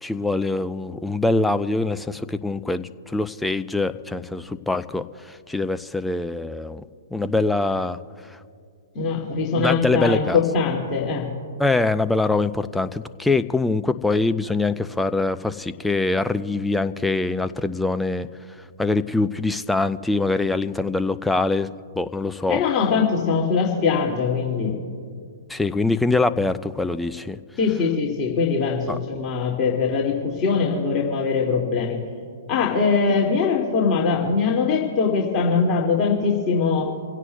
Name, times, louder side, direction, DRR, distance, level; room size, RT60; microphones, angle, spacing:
voice 1, 0.0-6.8 7.1-8.0 8.3-8.4 9.6-10.4 11.6-18.3 18.8-21.7 22.0-22.6 25.5-27.4 28.9-29.0, left 3 dB, 5° left, 11 dB, 0.5 m, -23 dB
voice 2, 8.9-11.3 22.5-24.8 27.6-32.0 32.5-36.9, left 5 dB, 30° left, -2 dB, 2.3 m, -22 dB
27.5 x 16.5 x 2.3 m, 2.2 s
figure-of-eight pair, 110°, 0 cm